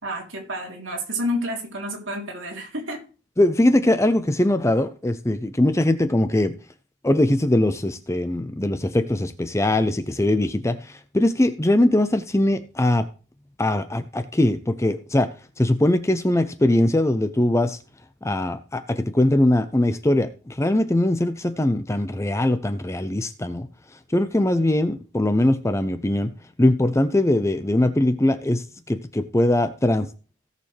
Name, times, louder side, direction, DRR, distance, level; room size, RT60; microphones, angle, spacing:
voice 1, 0.0-3.0, equal, 65° right, 3.2 m, -29 dB
voice 2, 3.4-6.6 7.0-13.1 13.6-17.8 18.2-23.7 24.1-26.3 26.6-30.1, left 1 dB, 15° left, 0.5 m, -21 dB
16.5 x 6.7 x 3.3 m
head